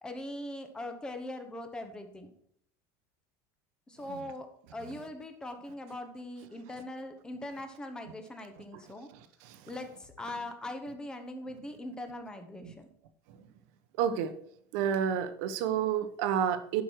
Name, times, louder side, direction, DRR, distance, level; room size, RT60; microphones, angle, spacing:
voice 1, 0.0-2.3 3.9-9.1 9.7-12.9, left 1 dB, 10° left, 6 dB, 0.9 m, -41 dB
voice 2, 14.0-14.3 14.7-16.8, right 8 dB, 60° right, 10 dB, 1.0 m, -30 dB
11.5 x 5.4 x 4.6 m, 0.67 s
cardioid pair, 175°, 10 cm